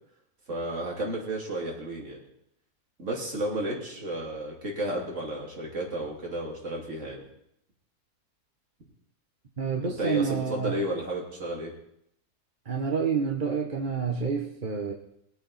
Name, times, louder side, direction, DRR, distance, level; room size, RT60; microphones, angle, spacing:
voice 1, 0.5-2.2 3.0-7.3 9.8-11.7, right 1 dB, 50° right, -2 dB, 3.3 m, -32 dB
voice 2, 9.6-10.8 12.6-14.9, right 6 dB, 35° right, 0 dB, 1.3 m, -28 dB
21.0 x 8.3 x 4.2 m, 0.74 s
omnidirectional pair, 1.7 m